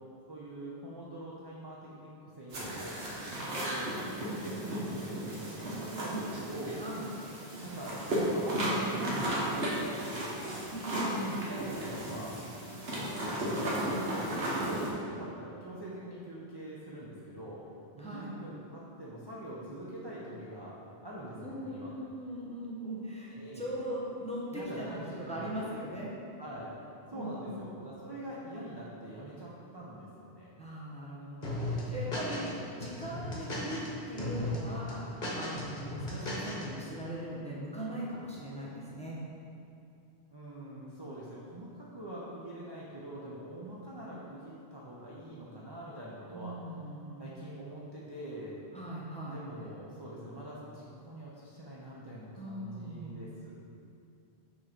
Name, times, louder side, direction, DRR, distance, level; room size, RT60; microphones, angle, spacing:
voice 1, 0.3-2.1 2.4-3.0 3.7-6.8 7.6-7.9 8.3-10.4 10.8-12.3 13.4-17.6 17.9-20.8 21.0-21.9 23.3-23.7 24.5-25.6 26.4-26.7 27.1-30.6 40.3-46.5 47.2-48.5 49.2-53.6, right 1 dB, 30° right, -7 dB, 0.6 m, -44 dB
sound 1, 2.5-14.9, right 1 dB, 70° right, 1.3 m, -34 dB
voice 2, 5.9-6.3 6.7-7.1 10.7-11.4 18.0-18.3 21.4-24.9 25.3-26.1 27.1-27.7 30.6-39.2 46.3-47.3 48.7-49.4 52.4-53.2, right 1 dB, 5° left, -6 dB, 0.8 m, -40 dB
sound 2, 31.4-32.5 32.8-33.9 34.2-34.6 34.9-36.6, left 1 dB, 45° left, 1.1 m, -36 dB
6.2 x 3.0 x 5.0 m, 2.6 s
omnidirectional pair, 1.1 m